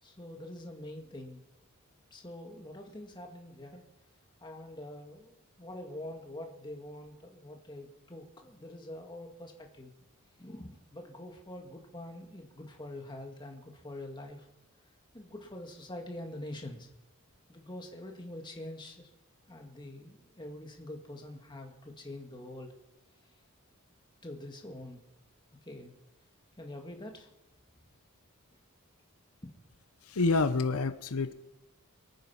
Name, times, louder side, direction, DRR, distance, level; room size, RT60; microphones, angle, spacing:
voice 1, 0.0-1.4 2.1-3.9 4.4-9.9 10.4-14.5 15.1-16.9 17.5-19.1 19.5-22.7 24.2-25.0 25.6-26.0 26.6-27.3 29.4-29.5, left 1 dB, 20° left, 2 dB, 2.0 m, -45 dB
voice 2, 30.1-31.3, left 3 dB, 85° left, 11 dB, 0.8 m, -28 dB
24.0 x 9.3 x 5.6 m, 0.99 s
head